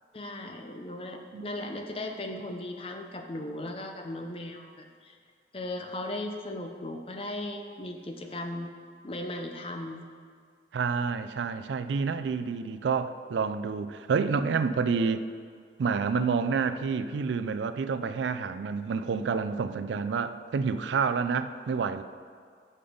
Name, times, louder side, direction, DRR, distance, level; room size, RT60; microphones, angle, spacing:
voice 1, 0.1-5.2 5.5-8.7 9.0-10.1, left 1 dB, 30° left, 4 dB, 0.6 m, -37 dB
voice 2, 10.7-15.3 15.8-22.0, right 5 dB, 85° right, 11 dB, 0.4 m, -28 dB
6.8 x 5.4 x 5.1 m, 2.1 s
head